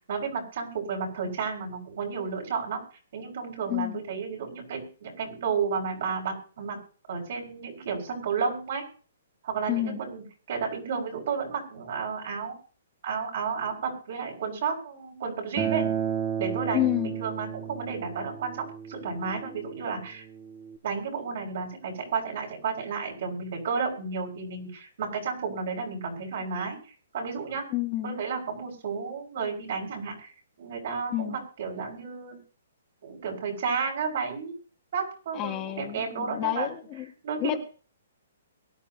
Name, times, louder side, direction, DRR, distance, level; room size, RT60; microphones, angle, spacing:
voice 1, 0.1-2.8 3.1-6.8 7.1-8.8 9.4-12.6 13.0-15.9 16.4-20.3 20.8-26.8 27.1-27.7 28.0-30.3 30.6-32.4 33.0-34.5 34.9-36.7 37.2-37.6, right 5 dB, 55° right, 1 dB, 5.8 m, -32 dB
voice 2, 3.7-4.0 9.7-10.0 16.7-17.1 27.7-28.2 31.1-31.4 35.3-37.0 37.4-37.6, left 14 dB, 25° left, 3 dB, 1.7 m, -29 dB
Acoustic guitar, 15.6-20.8, right 8 dB, 25° right, 1.8 m, -33 dB
23.0 x 10.5 x 2.8 m, 0.39 s
hypercardioid pair, 155°, 0 cm